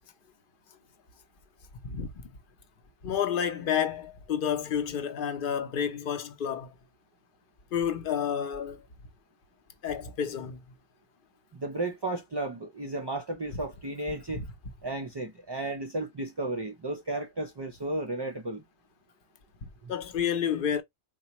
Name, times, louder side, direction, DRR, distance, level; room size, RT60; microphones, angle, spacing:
voice 1, 3.0-6.7 7.7-8.8 9.8-10.6 14.3-14.5 19.6-20.8, left 8 dB, 60° left, 0.7 m, -30 dB
voice 2, 11.5-14.4 14.8-18.6 19.8-19.9, right 2 dB, 45° right, 0.3 m, -34 dB
4.0 x 2.3 x 2.8 m
omnidirectional pair, 1.1 m